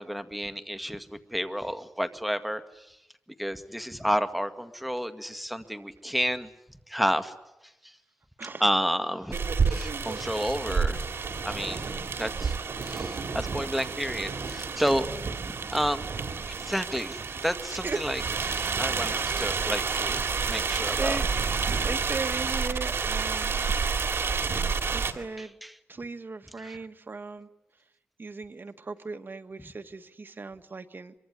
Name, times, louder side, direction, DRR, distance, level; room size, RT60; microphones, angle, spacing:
voice 1, 0.0-3.0 3.4-6.5 6.9-7.3 7.8-7.9 8.6-11.0 11.4-11.9 12.2-16.0 16.6-18.2 18.5-21.2 25.4-25.7 26.6-26.8, equal, ahead, 9 dB, 1.9 m, -31 dB
sound 1, 9.3-25.1, right 5 dB, 85° right, 2.3 m, -29 dB
voice 2, 21.0-21.3 21.8-23.5 24.9-25.6 25.9-27.5 28.2-31.1, right 4 dB, 55° right, 9 dB, 1.6 m, -37 dB
24.5 x 24.0 x 9.8 m, 0.90 s
cardioid pair, 60°, 4 cm